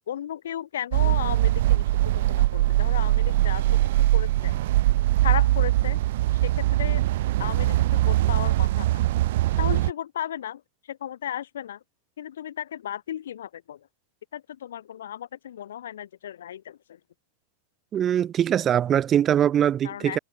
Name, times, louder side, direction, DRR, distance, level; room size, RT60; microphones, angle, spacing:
voice 1, 0.1-4.6 5.2-6.0 6.4-7.0 7.4-9.0 9.6-10.6 10.9-11.8 12.2-13.9 14.3-17.0 19.8-20.2, left 10 dB, 85° left, 1.6 m, -35 dB
sound 1, 0.9-9.9, right 16 dB, 65° right, 0.5 m, -22 dB
voice 2, 17.9-20.2, right 10 dB, 25° right, 0.8 m, -22 dB
supercardioid pair, 135°, 0 cm